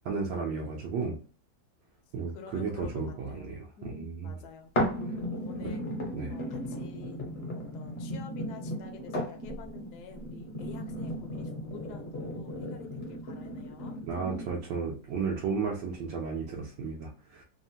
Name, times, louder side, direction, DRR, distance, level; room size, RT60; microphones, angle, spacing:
voice 1, 0.0-1.2 2.1-3.6 4.0-4.3 5.6-5.7 6.1-6.3 14.1-17.4, right 5 dB, 75° right, -2 dB, 1.3 m, -33 dB
voice 2, 2.3-4.7 5.4-5.8 6.3-7.2 7.7-14.0, left 5 dB, 70° left, 5 dB, 1.1 m, -48 dB
sound 1, 4.8-14.7 15.3-15.4, equal, 45° left, 0.8 m, -35 dB
3.3 x 2.1 x 2.6 m, 0.40 s
omnidirectional pair, 2.0 m